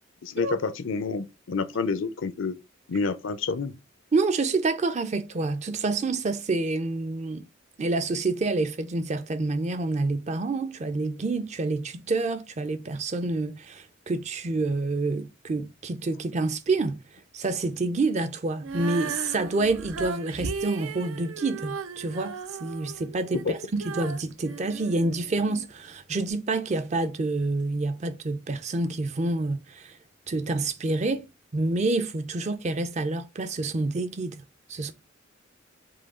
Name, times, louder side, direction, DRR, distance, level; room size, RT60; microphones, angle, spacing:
voice 1, 0.2-2.6 2.9-3.7 23.5-23.6, left 4 dB, 75° left, 0.5 m, -28 dB
voice 2, 4.1-7.5 7.8-17.0 17.3-29.9 30.3-34.4 34.7-34.9, right 3 dB, 35° right, 0.4 m, -28 dB
Female singing, 18.6-25.7 26.3-26.4, right 4 dB, 90° right, 0.5 m, -36 dB
5.0 x 2.3 x 3.6 m
head